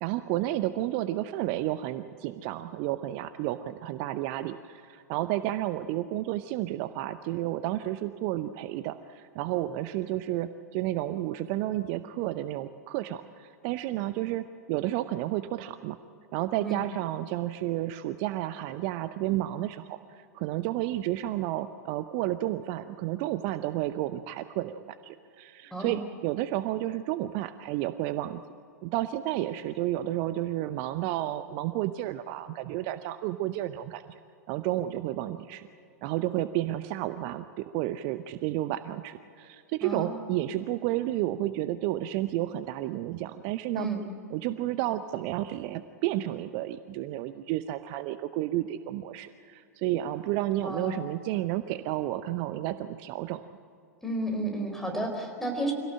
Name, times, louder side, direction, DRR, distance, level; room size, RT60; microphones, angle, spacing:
voice 1, 0.0-16.0 16.3-28.4 28.8-34.1 34.5-35.6 36.0-43.9 44.3-53.4, right 14 dB, 45° right, 12 dB, 0.7 m, -31 dB
voice 2, 25.7-26.0 39.8-40.2 43.8-44.0 50.6-50.9 54.0-55.7, right 2 dB, 5° left, 2 dB, 4.4 m, -32 dB
25.0 x 17.0 x 7.7 m, 2.5 s
figure-of-eight pair, 95°, 9 cm